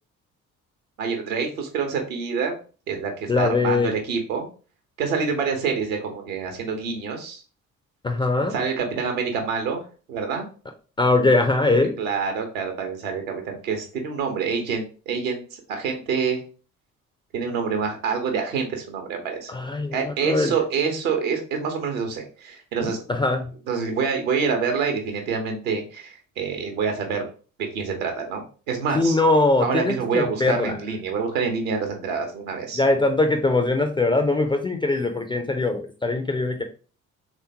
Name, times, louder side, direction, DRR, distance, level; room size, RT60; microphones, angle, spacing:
voice 1, 1.0-2.6 2.9-4.5 5.0-7.4 8.5-10.5 12.0-16.4 17.3-19.5 19.9-23.0 23.7-27.3 27.7-29.2 29.6-32.8, right 5 dB, 75° right, 4 dB, 0.9 m, -27 dB
voice 2, 3.3-3.9 8.0-8.6 11.0-12.0 19.5-20.5 22.8-23.5 28.9-30.8 32.7-36.6, left 2 dB, 15° left, 5 dB, 0.3 m, -21 dB
3.3 x 2.9 x 2.7 m, 0.37 s
figure-of-eight pair, 50°, 41 cm